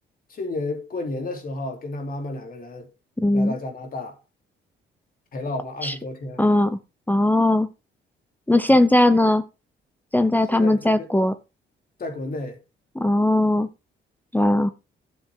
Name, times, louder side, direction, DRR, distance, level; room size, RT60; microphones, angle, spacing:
voice 1, 0.3-2.9 3.3-4.2 5.3-6.4 8.7-8.9 10.5-11.1 12.0-12.6, left 2 dB, 45° left, 3.2 m, -32 dB
voice 2, 3.2-3.6 5.8-5.9 6.4-6.8 7.1-7.7 8.5-9.4 10.1-11.3 13.0-13.7 14.3-14.7, left 1 dB, 10° left, 0.8 m, -19 dB
13.0 x 7.1 x 3.7 m
cardioid pair, 90°, 20 cm